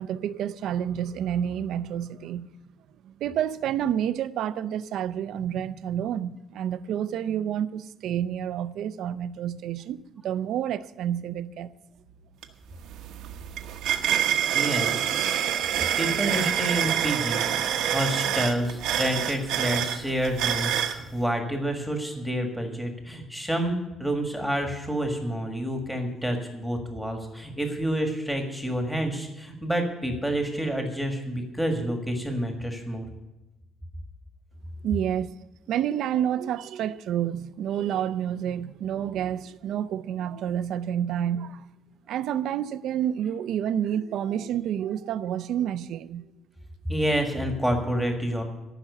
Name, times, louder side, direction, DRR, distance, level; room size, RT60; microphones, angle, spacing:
voice 1, 0.0-2.5 3.0-11.7 14.8-14.9 34.8-35.4 35.7-41.7 42.1-46.3, right 10 dB, 65° right, 0.5 m, -29 dB
sound 1, 12.4-12.5 12.8-21.0, right 10 dB, 85° right, 1.1 m, -26 dB
voice 2, 14.5-15.0 16.0-17.4 17.9-33.1 46.9-48.4, right 1 dB, ahead, 1.6 m, -28 dB
14.5 x 6.1 x 9.6 m
cardioid pair, 160°, 0 cm